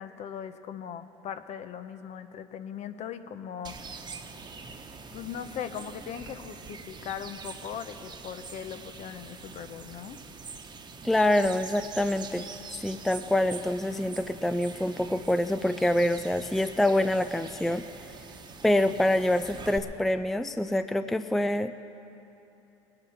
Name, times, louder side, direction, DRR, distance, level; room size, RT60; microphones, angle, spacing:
voice 1, 0.0-3.8 5.1-10.2, left 8 dB, 50° left, 11 dB, 0.8 m, -39 dB
sound 1, 3.6-19.8, right 4 dB, 30° right, 1.1 m, -44 dB
voice 2, 11.0-12.5 12.8-17.8 18.6-21.7, left 1 dB, ahead, 11 dB, 0.3 m, -26 dB
20.5 x 9.0 x 5.8 m, 3.0 s
supercardioid pair, 100°, 15 cm